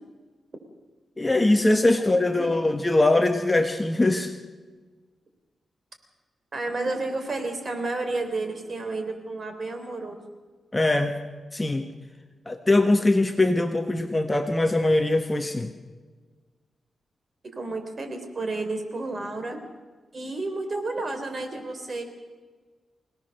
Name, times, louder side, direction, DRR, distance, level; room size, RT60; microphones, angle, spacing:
voice 1, 1.2-4.3 10.7-11.2 11.5-11.9 12.5-15.7, left 2 dB, 15° left, 5 dB, 1.3 m, -22 dB
voice 2, 6.5-10.2 17.5-19.6 20.1-22.0, right 2 dB, 40° right, 6 dB, 3.6 m, -31 dB
27.0 x 18.0 x 6.6 m, 1.4 s
wide cardioid pair, 110°, 0 cm